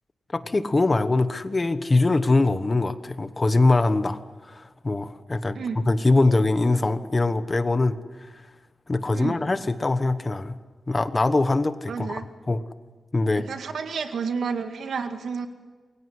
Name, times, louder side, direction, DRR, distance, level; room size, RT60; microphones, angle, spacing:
voice 1, 0.3-4.2 4.5-8.0 8.9-10.6 10.9-12.6 13.1-13.5, left 2 dB, 25° left, 11 dB, 1.2 m, -22 dB
voice 2, 11.9-12.2 13.4-15.5, right 5 dB, 80° right, 6 dB, 2.1 m, -30 dB
27.5 x 23.0 x 8.0 m, 1.4 s
wide cardioid pair, 155°, 0 cm